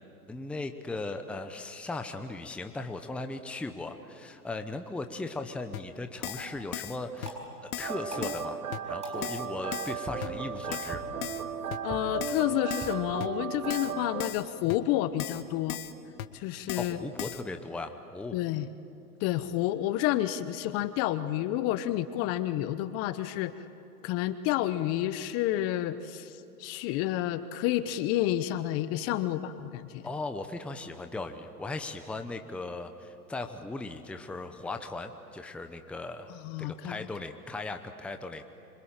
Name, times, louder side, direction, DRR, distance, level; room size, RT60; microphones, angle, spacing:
voice 1, 0.3-7.4 7.8-11.0 16.7-18.4 30.0-38.5, left 2 dB, 5° left, 6 dB, 0.9 m, -38 dB
Keyboard (musical), 5.7-5.8 6.2-6.5 6.7-7.0 7.2-7.3 7.7-8.0 8.2-8.5 8.7-8.8 9.2-9.5 9.7-9.9 10.2-10.3 10.7-10.9 11.2-11.4 11.7-11.8 12.2-12.4 12.7-12.9 13.2-13.3 13.7-13.9 14.2-14.4 14.7-14.8 15.2-15.4 15.7-15.9 16.2-16.3 16.7-16.9 17.2-17.4, left 11 dB, 65° left, 1.7 m, -37 dB
sound 1, 6.2-15.1, right 1 dB, 15° right, 6.2 m, -47 dB
sound 2, 7.8-14.3, right 7 dB, 70° right, 1.5 m, -36 dB
voice 2, 11.8-15.8 16.3-17.0 18.3-18.7 19.2-23.5 24.0-26.3 26.6-30.0 36.4-36.9, left 13 dB, 30° left, 12 dB, 0.9 m, -30 dB
26.5 x 25.5 x 8.9 m, 2.7 s
hypercardioid pair, 130°, 46 cm